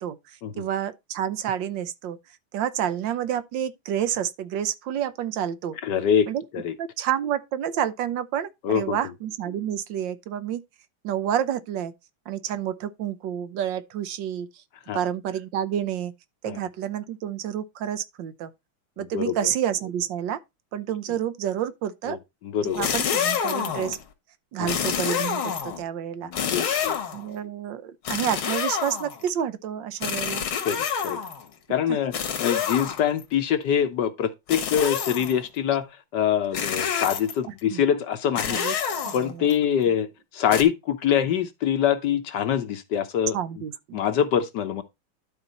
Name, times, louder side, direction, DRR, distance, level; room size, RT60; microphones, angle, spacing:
voice 1, 0.0-2.2 2.5-5.8 6.3-6.4 6.8-10.6 11.0-11.9 12.3-14.5 14.9-16.1 16.4-18.5 19.0-20.4 20.7-22.2 22.8-24.0 24.5-26.3 27.1-30.4 31.9-32.0 37.7-37.8 38.5-38.7 39.0-39.5 43.3-44.0, right 10 dB, 70° right, 1.4 m, -29 dB
voice 2, 5.8-6.3 6.5-6.7 8.6-9.0 14.9-15.0 16.4-16.6 19.1-19.3 22.1-22.2 22.4-22.9 24.6-25.0 26.2-27.0 30.6-31.2 31.7-32.2 32.4-35.9 36.1-38.6 39.1-40.1 40.3-43.4 43.9-44.8, left 9 dB, 65° left, 1.3 m, -24 dB
sound 1, 22.7-24.0 24.7-25.8 26.3-27.3 28.1-29.3 30.0-31.4 32.1-33.2 34.5-35.4 36.5-37.5 38.4-39.5 40.5-40.6, left 7 dB, 80° left, 2.2 m, -28 dB
12.0 x 4.3 x 4.1 m
omnidirectional pair, 2.3 m